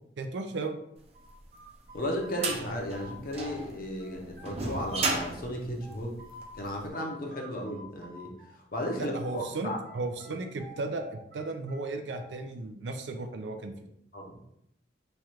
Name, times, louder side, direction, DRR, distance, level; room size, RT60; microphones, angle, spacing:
voice 1, 0.2-0.8 9.0-13.7, right 3 dB, 80° right, 6 dB, 0.5 m, -35 dB
sound 1, 1.1-3.7 4.0-6.5 6.9-9.5 9.8-12.5, right 2 dB, 50° right, 0.9 m, -50 dB
sound 2, 1.4-6.7, right 3 dB, 35° right, 0.5 m, -34 dB
voice 2, 1.9-6.2 6.5-8.3 8.7-9.8 14.1-14.4, equal, 55° left, 0 dB, 0.7 m, -34 dB
3.2 x 2.4 x 4.3 m, 0.77 s
head